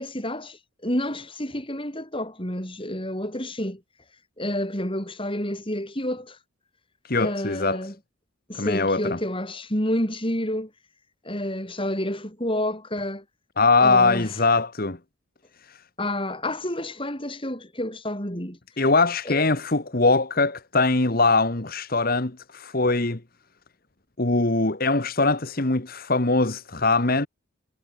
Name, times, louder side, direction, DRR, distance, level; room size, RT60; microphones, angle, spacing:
voice 1, 0.0-3.8 4.4-6.4 7.2-7.9 8.5-10.7 11.2-13.2 13.8-14.3 16.0-18.6 19.2-19.4, left 1 dB, 25° left, 6.6 m, -29 dB
voice 2, 7.0-7.9 8.5-9.2 13.6-15.0 15.7-15.8 18.8-23.2 24.2-27.3, left 3 dB, 45° left, 1.5 m, -22 dB
head